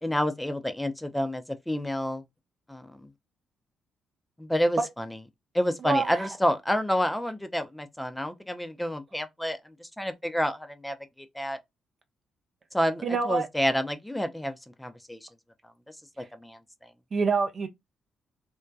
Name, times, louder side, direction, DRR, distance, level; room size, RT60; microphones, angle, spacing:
voice 1, 0.0-2.2 2.7-3.1 4.4-5.2 5.5-11.6 12.7-15.3 16.2-16.9, equal, 10° left, 0.5 m, -29 dB
voice 2, 5.8-6.3 13.0-13.5 16.2-16.3 17.1-17.7, right 4 dB, 50° right, 0.5 m, -26 dB
2.6 x 2.2 x 2.2 m
hypercardioid pair, 45°, 0 cm